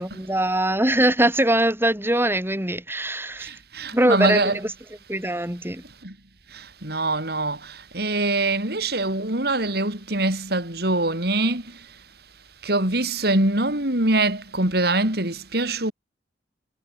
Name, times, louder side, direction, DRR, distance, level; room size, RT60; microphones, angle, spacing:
voice 1, 0.0-3.5 3.9-4.7 5.1-5.8, right 1 dB, 15° right, 7.5 m, -22 dB
voice 2, 3.4-4.6 6.0-6.1 6.8-7.6 7.9-11.6 12.6-15.9, right 2 dB, 65° right, 7.6 m, -23 dB
head